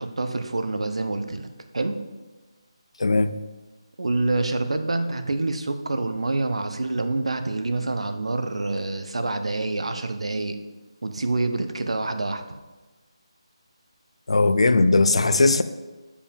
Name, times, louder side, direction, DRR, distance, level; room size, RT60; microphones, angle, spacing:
voice 1, 0.0-1.5 1.7-2.0 4.0-10.6 11.0-12.4, right 2 dB, 80° right, 0.8 m, -26 dB
voice 2, 3.0-3.4 14.3-15.6, left 3 dB, 80° left, 0.5 m, -18 dB
7.2 x 5.1 x 5.2 m
figure-of-eight pair, 175°, 3 cm